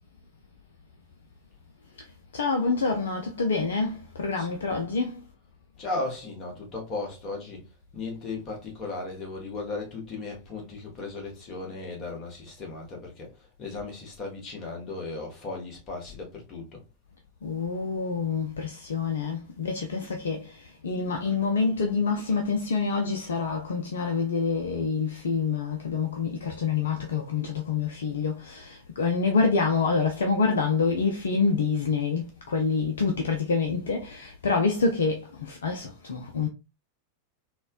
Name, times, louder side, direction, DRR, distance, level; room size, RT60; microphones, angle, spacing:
voice 1, 2.3-5.3 17.4-36.5, left 4 dB, 65° left, 0.5 m, -27 dB
voice 2, 5.7-7.7 7.9-16.8, left 3 dB, 30° left, 1.4 m, -36 dB
4.1 x 2.3 x 2.3 m
figure-of-eight pair, 90°, 0 cm